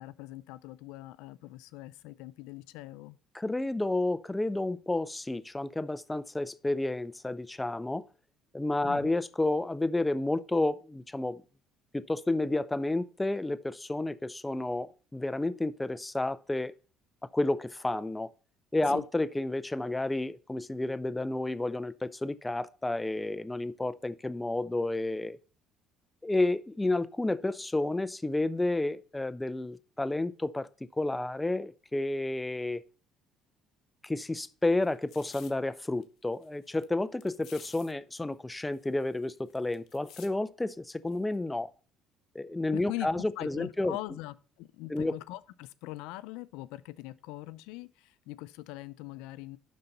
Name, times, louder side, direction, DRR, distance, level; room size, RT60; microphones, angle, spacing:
voice 1, 0.0-3.2 8.8-9.1 18.9-19.0 42.7-49.6, left 17 dB, 85° left, 0.4 m, -42 dB
voice 2, 3.3-8.0 8.5-11.4 11.9-16.7 17.3-18.3 18.7-25.4 26.2-30.7 31.0-32.8 34.0-41.7 42.3-44.0 44.9-45.1, left 2 dB, 10° left, 0.5 m, -31 dB
sound 1, 34.8-35.5 36.0-36.1 36.3-36.8 37.2-37.9 38.2-38.3 38.5-40.3 41.1-41.4, left 10 dB, 65° left, 1.1 m, -52 dB
11.5 x 4.0 x 5.3 m
cardioid pair, 105°, 0 cm